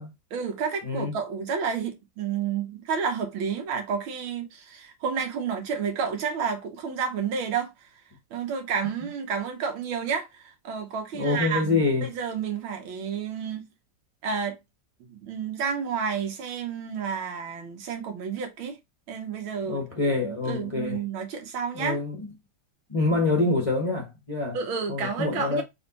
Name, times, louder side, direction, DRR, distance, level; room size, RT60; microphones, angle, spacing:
voice 1, 0.3-7.9 8.3-13.7 14.2-14.6 15.0-18.8 19.1-22.0 24.5-25.6, right 6 dB, 85° right, 1.8 m, -30 dB
voice 2, 11.1-12.1 19.7-21.0 21.7-22.2 22.9-24.6 24.9-25.6, left 3 dB, 30° left, 0.6 m, -26 dB
4.1 x 2.7 x 4.0 m
omnidirectional pair, 2.2 m